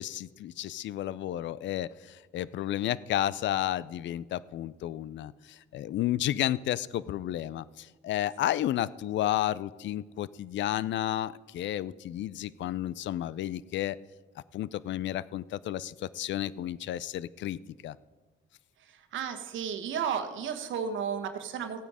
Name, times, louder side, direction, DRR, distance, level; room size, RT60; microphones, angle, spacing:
voice 1, 0.0-14.0 14.5-18.0, left 12 dB, 65° left, 19 dB, 0.5 m, -32 dB
voice 2, 19.1-21.8, right 7 dB, 75° right, 7 dB, 1.3 m, -33 dB
15.0 x 8.9 x 4.9 m, 1.3 s
cardioid pair, 90°, 20 cm